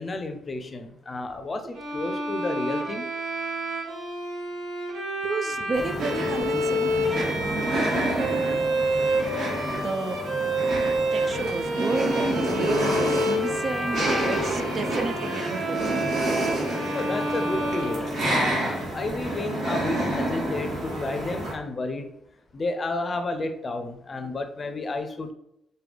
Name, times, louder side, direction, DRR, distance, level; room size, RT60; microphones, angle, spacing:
voice 1, 0.0-3.1 16.9-22.1 22.5-25.3, left 2 dB, 35° left, 7 dB, 0.5 m, -31 dB
Bowed string instrument, 1.7-18.7, right 1 dB, 90° right, 1.0 m, -29 dB
voice 2, 5.2-6.9 7.3-7.9 9.8-10.2 11.1-14.0 14.3-16.0, right 4 dB, 45° right, 9 dB, 0.3 m, -31 dB
sound 1, 5.7-21.5, right 1 dB, 60° right, 1.4 m, -29 dB
4.8 x 2.2 x 3.4 m, 0.79 s
cardioid pair, 90°, 0 cm